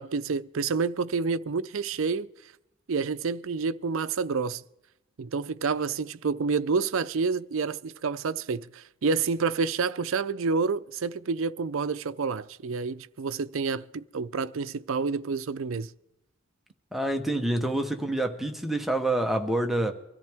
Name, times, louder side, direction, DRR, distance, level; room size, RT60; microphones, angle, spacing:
voice 1, 0.0-2.3 2.9-4.6 5.2-15.9, right 4 dB, 65° right, 0.5 m, -29 dB
voice 2, 16.9-19.9, right 1 dB, ahead, 0.9 m, -27 dB
24.5 x 14.0 x 3.5 m
head